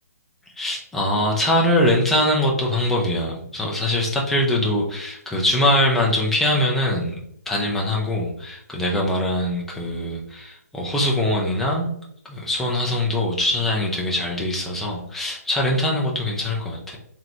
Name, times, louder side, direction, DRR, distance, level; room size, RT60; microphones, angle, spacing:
voice 1, 0.6-7.2 7.5-11.9 12.3-17.0, left 1 dB, 5° left, -3 dB, 0.6 m, -22 dB
3.7 x 3.3 x 3.0 m, 0.69 s
hypercardioid pair, 150°, 9 cm